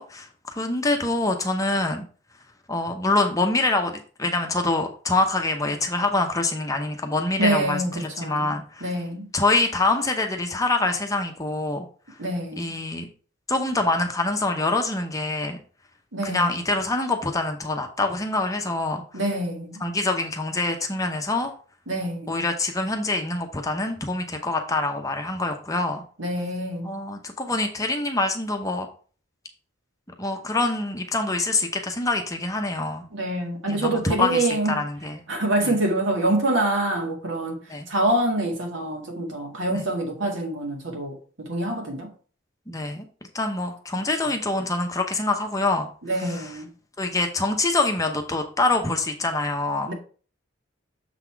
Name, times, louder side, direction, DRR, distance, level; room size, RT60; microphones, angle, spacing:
voice 1, 0.0-2.0 2.7-8.9 9.3-11.9 12.6-13.1 13.5-15.6 16.2-19.0 19.8-21.5 22.3-26.0 26.8-28.9 30.2-33.0 33.7-35.2 35.6-35.7 37.7-37.9 39.7-39.9 42.7-43.0 43.3-45.9 46.2-46.6 47.0-49.9, left 2 dB, 15° left, 0.8 m, -25 dB
voice 2, 7.4-8.5 8.8-9.3 12.2-12.7 16.1-16.5 19.1-19.8 21.9-22.3 26.2-27.0 33.1-34.7 35.3-42.1 46.0-46.7 49.9-50.0, right 1 dB, 65° right, 2.1 m, -26 dB
6.8 x 4.1 x 4.6 m
head